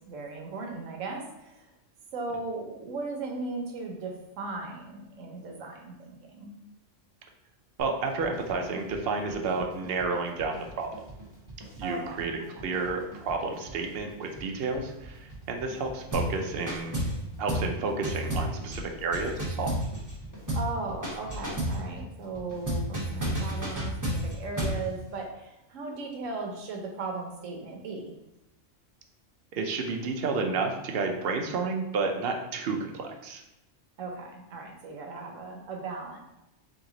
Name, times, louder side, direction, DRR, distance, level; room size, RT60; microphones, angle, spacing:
voice 1, 0.0-1.7 2.1-6.5 11.8-12.7 20.5-28.1 34.0-36.2, right 3 dB, 80° right, 1 dB, 1.1 m, -37 dB
sound 1, 7.8-25.2, right 1 dB, 15° left, 1.3 m, -47 dB
voice 2, 7.8-10.9 11.8-17.0 17.4-19.7 29.5-33.4, right 4 dB, 60° right, 3 dB, 0.7 m, -31 dB
sound 2, 16.1-16.4 16.7-17.2 17.5-17.7 18.0-20.2 20.5-20.7 21.0-21.8 22.7-24.8, equal, 15° right, 0.9 m, -30 dB
3.5 x 3.0 x 3.7 m, 0.92 s
omnidirectional pair, 1.3 m